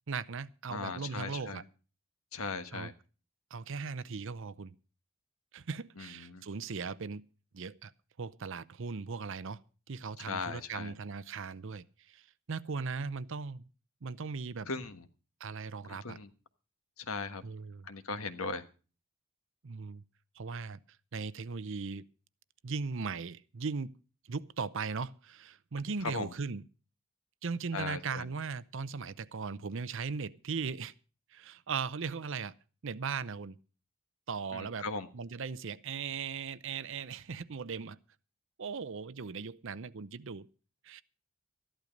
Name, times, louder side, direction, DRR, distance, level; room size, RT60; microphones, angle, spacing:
voice 1, 0.1-1.6 2.7-2.9 3.5-4.7 5.5-7.2 7.5-7.9 8.2-9.6 9.9-13.7 14.0-14.7 15.4-16.2 17.4-17.9 19.6-20.0 20.3-20.8 21.1-22.0 22.6-23.9 24.3-26.6 27.4-30.9 31.3-32.5 32.8-33.6 34.3-34.9 35.1-38.0 38.6-40.5 40.8-41.0, right 5 dB, 60° right, 0.6 m, -38 dB
voice 2, 0.7-1.6 2.3-2.9 6.0-6.4 10.2-10.9 14.7-15.0 15.9-16.3 17.0-17.4 17.8-18.6 26.0-26.3 27.7-28.2 34.5-35.1, left 4 dB, 85° left, 1.3 m, -38 dB
13.5 x 11.5 x 5.2 m
head